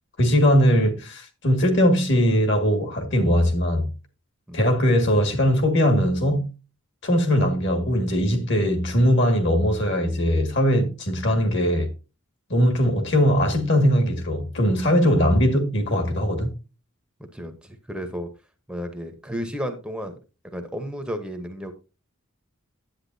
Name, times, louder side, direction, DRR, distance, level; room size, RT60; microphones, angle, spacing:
voice 1, 0.2-3.9 4.5-6.5 7.0-11.9 12.5-16.5, equal, 55° left, 2.0 m, -20 dB
voice 2, 17.3-18.3 18.7-20.1 20.5-21.7, equal, 5° right, 0.8 m, -32 dB
10.0 x 8.6 x 2.7 m
head